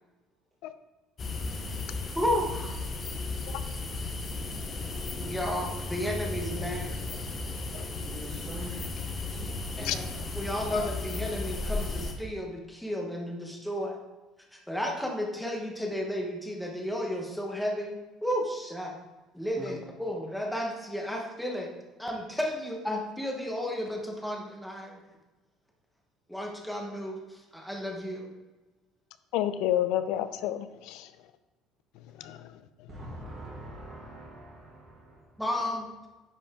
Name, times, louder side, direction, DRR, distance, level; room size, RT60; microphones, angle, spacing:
sound 1, 1.2-12.1, left 3 dB, 25° left, 0.9 m, -35 dB
voice 1, 2.1-2.8 5.2-7.0 9.8-10.1 10.3-14.0 14.5-18.9 19.3-21.7 22.0-25.0 26.3-28.3 35.4-35.9, equal, ahead, 0 dB, 1.1 m, -33 dB
voice 2, 8.1-8.8 9.4-9.5 9.8-10.0 19.5-19.7 32.9-35.3, right 1 dB, 20° right, -8 dB, 1.5 m, -43 dB
voice 3, 29.3-31.1 32.2-32.5, left 12 dB, 70° left, 12 dB, 0.5 m, -30 dB
10.0 x 5.2 x 3.7 m, 1.1 s
cardioid pair, 165°, 0 cm